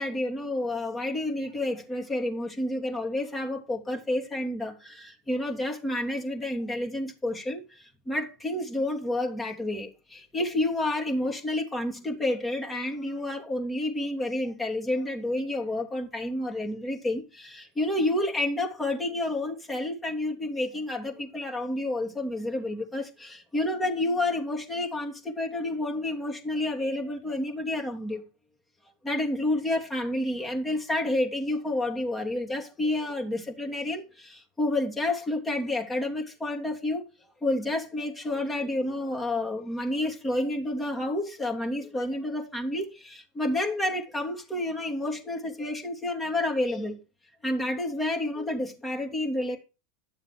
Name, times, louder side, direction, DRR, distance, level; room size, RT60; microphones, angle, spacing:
voice 1, 0.0-28.2 29.0-37.0 37.4-47.0 47.4-49.6, left 1 dB, 10° left, 3.0 m, -30 dB
12.0 x 7.4 x 4.6 m
hypercardioid pair, 90°, 0 cm